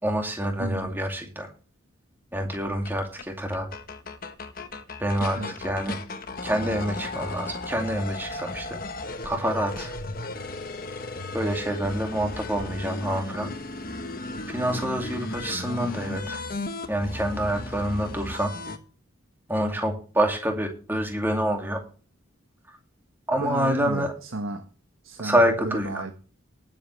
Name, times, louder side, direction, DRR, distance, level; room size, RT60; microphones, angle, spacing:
voice 1, 0.0-1.5 2.3-3.7 5.0-6.0 6.4-8.8 9.2-9.9 11.3-13.5 14.5-16.4 16.9-18.5 19.5-21.8 23.3-24.1 25.2-25.9, equal, 10° right, 2.4 m, -27 dB
voice 2, 0.6-1.0 5.3-5.6 23.4-24.7 25.0-26.1, right 2 dB, 80° right, 1.5 m, -33 dB
sound 1, 2.5-2.6 2.9-3.0 3.2-3.3 3.5-18.8, left 2 dB, 45° left, 1.2 m, -35 dB
19.5 x 7.5 x 3.3 m
head